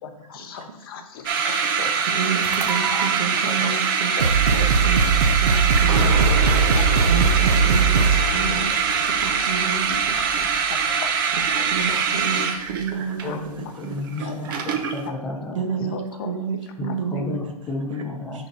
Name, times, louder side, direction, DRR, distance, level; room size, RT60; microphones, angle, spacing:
voice 1, 0.0-2.0 2.5-2.9 3.3-3.7 4.1-5.1 6.8-7.1 8.1-8.8 9.2-9.3 9.9-10.0 10.4-11.1 11.6-12.3 13.2-13.8 14.2-14.6 15.1-15.2 15.9-16.3 16.8-17.2, left 5 dB, 40° left, 6 dB, 0.7 m, -37 dB
sound 1, 1.3-15.1, right 6 dB, 35° right, 0.6 m, -23 dB
voice 2, 2.2-4.1 4.5-4.6 4.8-5.0 5.4-6.2 7.1-8.7 9.0-10.1 11.4-14.3 15.5-17.4 17.9-18.5, right 6 dB, 55° right, 4 dB, 1.1 m, -30 dB
sound 2, 2.4-3.1 3.8-3.9 4.2-8.4, right 5 dB, 90° right, 0.7 m, -20 dB
sound 3, 5.9-12.2 12.5-12.8, left 1 dB, 15° right, 1.2 m, -30 dB
voice 3, 13.2-15.9 16.8-18.5, left 2 dB, 5° left, -3 dB, 0.4 m, -32 dB
11.0 x 4.0 x 2.7 m, 0.95 s
hypercardioid pair, 145°, 20 cm